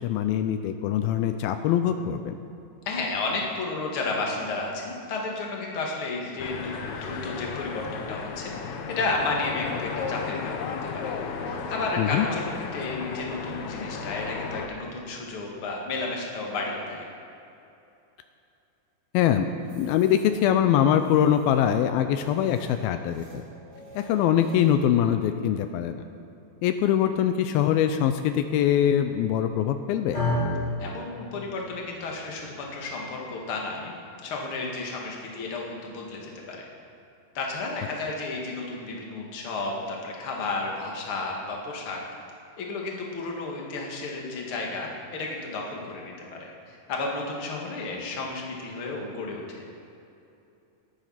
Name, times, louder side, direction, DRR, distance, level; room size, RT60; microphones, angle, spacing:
voice 1, 0.0-2.4 12.0-12.3 19.1-19.5 19.8-23.4 24.0-26.0 26.6-30.2, left 10 dB, 85° left, 8 dB, 2.4 m, -23 dB
voice 2, 2.9-8.5 8.9-11.2 11.5-17.0 30.8-33.9 34.2-36.7 37.3-42.0 42.6-49.4, left 3 dB, 45° left, -1 dB, 2.3 m, -32 dB
sound 1, 6.4-14.7, left 5 dB, 70° left, 1.9 m, -34 dB
sound 2, 19.6-24.7, right 3 dB, 30° right, 3.9 m, -49 dB
sound 3, 30.1-38.4, left 1 dB, 20° left, 3.3 m, -35 dB
20.0 x 9.2 x 5.8 m, 2.8 s
omnidirectional pair, 4.3 m